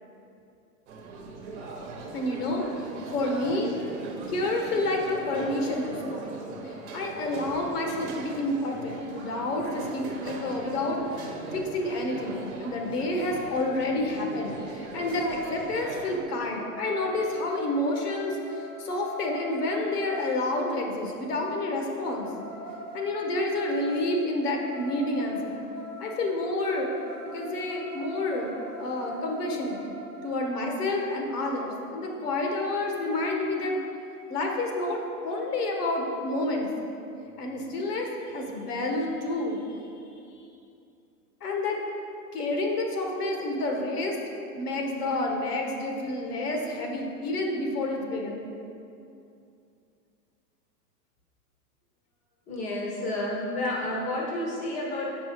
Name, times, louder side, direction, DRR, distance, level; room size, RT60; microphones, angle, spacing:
sound 1, 0.9-16.2, right 3 dB, 45° right, 1.1 m, -40 dB
voice 1, 2.1-2.6 3.1-3.7 4.3-6.2 6.6-22.3 22.9-25.6 26.0-26.9 27.3-28.5 28.8-29.8 30.2-33.8 34.3-36.7 37.4-39.8 40.3-40.5 41.4-41.8 42.3-44.2 44.6-48.5, left 2 dB, 70° left, 1 dB, 1.5 m, -29 dB
sound 2, 15.1-15.7 16.1-20.3 21.8-30.3, left 1 dB, 10° right, 0.5 m, -42 dB
voice 2, 52.5-55.1, left 1 dB, 15° left, -3 dB, 1.0 m, -30 dB
7.2 x 5.3 x 5.0 m, 2.6 s
hypercardioid pair, 160°, 47 cm